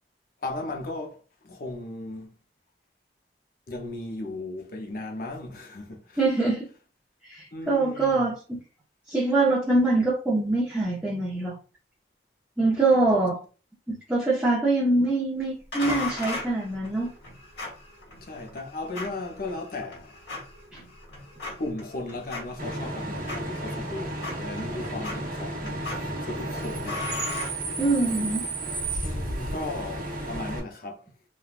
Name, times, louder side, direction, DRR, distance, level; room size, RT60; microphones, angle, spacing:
voice 1, 0.4-1.2 1.4-2.3 3.7-6.2 7.5-8.3 18.2-20.3 21.6-27.1 29.0-31.1, left 2 dB, 50° left, 0.6 m, -36 dB
voice 2, 6.2-6.7 7.2-8.6 9.1-11.5 12.6-13.4 13.9-17.1 27.8-28.4, right 2 dB, 10° right, 0.6 m, -24 dB
sound 1, 15.7-28.2, left 2 dB, 70° left, 1.3 m, -39 dB
Bus / Idling / Screech, 22.6-30.6, right 1 dB, 50° right, 1.0 m, -33 dB
3.3 x 2.2 x 2.4 m
head